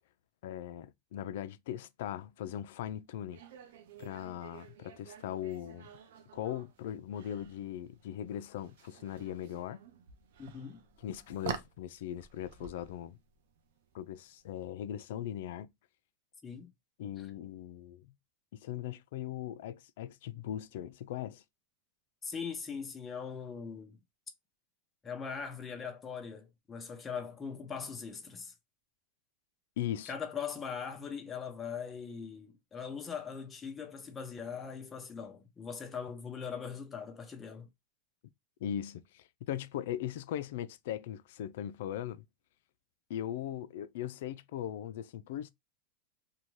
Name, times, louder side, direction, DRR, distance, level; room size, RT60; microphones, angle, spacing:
voice 1, 0.4-3.4 4.0-5.9 6.3-9.8 11.0-13.2 13.9-15.7 17.0-18.1 18.5-21.4 29.8-30.1 38.6-42.2 43.1-45.5, left 11 dB, 65° left, 0.3 m, -39 dB
sound 1, 3.3-14.6, right 7 dB, 75° right, 0.5 m, -49 dB
voice 2, 10.4-10.8 16.4-16.7 17.2-17.3 22.2-24.0 25.0-28.5 30.1-37.7, left 6 dB, 15° left, 0.6 m, -41 dB
2.6 x 2.2 x 3.0 m
supercardioid pair, 160°, 0 cm